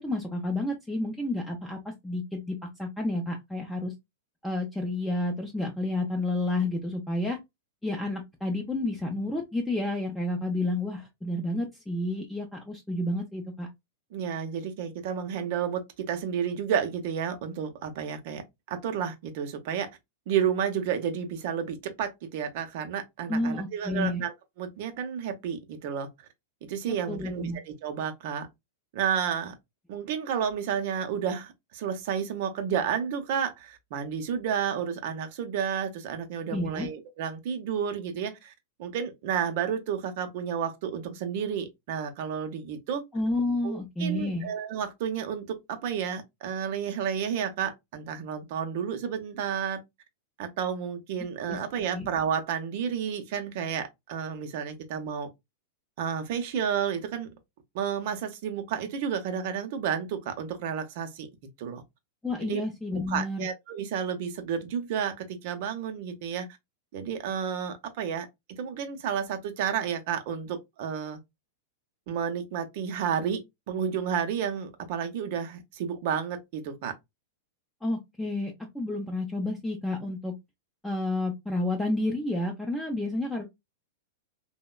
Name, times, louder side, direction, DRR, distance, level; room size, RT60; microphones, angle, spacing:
voice 1, 0.0-3.9 4.4-7.4 7.8-13.7 23.3-24.2 26.9-27.6 36.5-36.9 43.1-44.5 51.5-51.6 51.9-52.1 62.2-63.5 77.8-80.3 80.8-83.4, left 2 dB, 5° left, 0.5 m, -30 dB
voice 2, 14.1-18.4 18.7-19.9 20.3-26.1 26.6-28.5 28.9-29.5 29.9-38.5 38.8-43.0 43.6-49.8 50.4-55.3 56.0-57.3 57.7-61.3 61.6-61.8 62.4-62.6 63.1-66.5 66.9-71.2 72.1-76.9, right 8 dB, 55° right, 0.6 m, -31 dB
2.9 x 2.1 x 2.2 m
hypercardioid pair, 105°, 0 cm